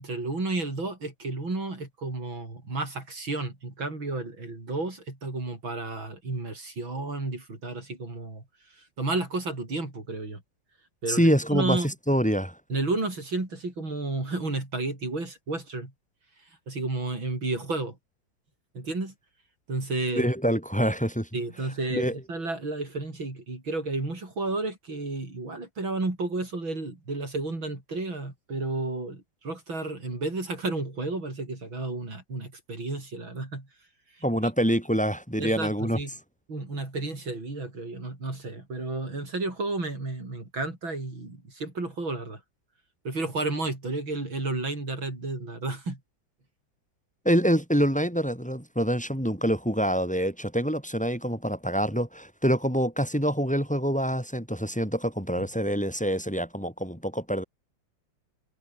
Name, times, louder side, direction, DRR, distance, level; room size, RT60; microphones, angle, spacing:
voice 1, 0.0-8.4 9.0-10.4 11.0-11.9 12.7-15.9 16.7-18.0 18.7-19.1 19.7-20.3 21.3-33.7 35.4-36.1 36.5-42.4 43.0-46.0, right 2 dB, 80° right, 7.4 m, -32 dB
voice 2, 11.1-12.6 20.2-21.3 21.9-22.2 34.2-36.0 47.2-57.4, equal, 5° left, 7.7 m, -26 dB
omnidirectional pair, 2.1 m